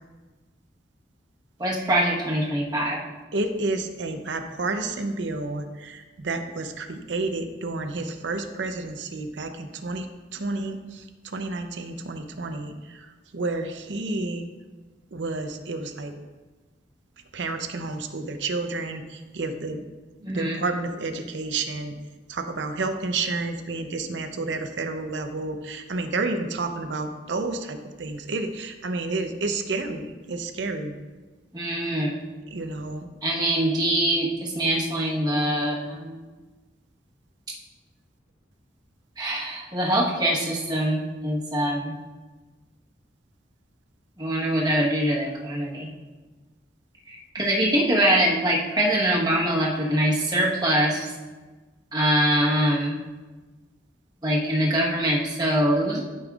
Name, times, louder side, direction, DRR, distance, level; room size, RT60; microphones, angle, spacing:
voice 1, 1.6-3.0 20.2-20.6 31.5-32.2 33.2-36.2 39.2-41.9 44.2-45.9 47.1-51.1 51.9-53.0 54.2-56.0, right 1 dB, 20° right, -3 dB, 1.2 m, -23 dB
voice 2, 3.3-14.4 15.1-16.1 17.3-19.8 20.2-22.0 22.3-31.0 32.5-33.1 47.4-47.5, right 3 dB, 85° right, 7 dB, 0.6 m, -30 dB
12.5 x 5.3 x 2.4 m, 1.3 s
head